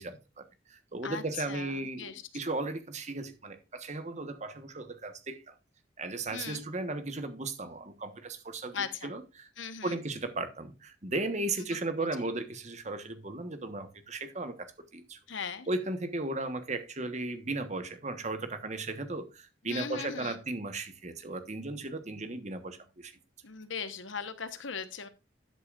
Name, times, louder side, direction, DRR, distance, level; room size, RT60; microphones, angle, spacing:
voice 1, 0.0-5.5 6.0-9.5 9.8-15.2 15.7-23.1, right 2 dB, 35° right, 1.3 m, -36 dB
voice 2, 1.0-2.2 6.3-6.6 8.7-9.1 9.6-10.0 11.7-11.8 15.3-15.7 19.7-20.4 23.4-25.1, left 6 dB, 80° left, 1.2 m, -38 dB
12.5 x 8.1 x 2.5 m
head